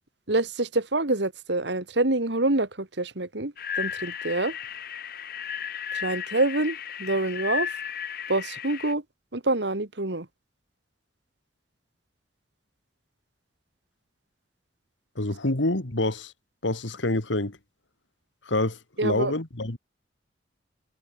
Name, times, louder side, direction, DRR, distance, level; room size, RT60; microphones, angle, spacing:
voice 1, 0.3-4.6 5.9-7.7 8.3-9.0 9.3-10.3 19.0-19.3, right 2 dB, 70° right, 1.9 m, -26 dB
sound 1, 3.6-8.9, left 8 dB, 50° left, 1.8 m, -34 dB
voice 2, 15.2-16.3 16.6-17.6 18.4-19.8, left 2 dB, 85° left, 2.3 m, -27 dB
head